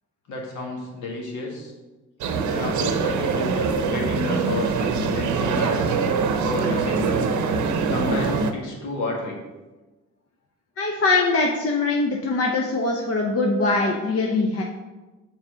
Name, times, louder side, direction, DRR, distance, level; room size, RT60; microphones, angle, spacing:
voice 1, 0.3-1.7 2.5-5.8 6.5-7.2 7.8-9.4, left 2 dB, 80° left, -1 dB, 1.8 m, -31 dB
sound 1, 2.2-8.5, right 5 dB, 70° right, 0.7 m, -23 dB
voice 2, 10.8-14.6, left 3 dB, 50° left, 0 dB, 0.8 m, -22 dB
5.8 x 4.2 x 5.1 m, 1.2 s
cardioid pair, 90°, 30 cm